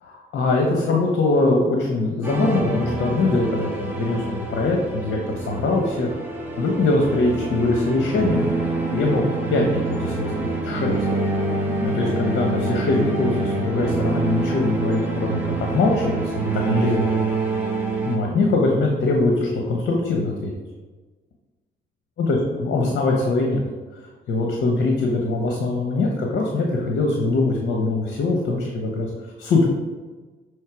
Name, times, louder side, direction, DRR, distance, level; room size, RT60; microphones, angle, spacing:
voice 1, 0.0-6.1 6.6-8.4 8.9-9.2 9.5-11.0 11.8-17.1 18.1-20.5 22.2-23.6 24.3-29.1 29.4-29.7, left 2 dB, 60° left, 1 dB, 0.9 m, -22 dB
sound 1, 2.2-18.2, right 3 dB, 10° right, 1.4 m, -26 dB
6.4 x 3.2 x 4.7 m, 1.3 s
cardioid pair, 90°, 20 cm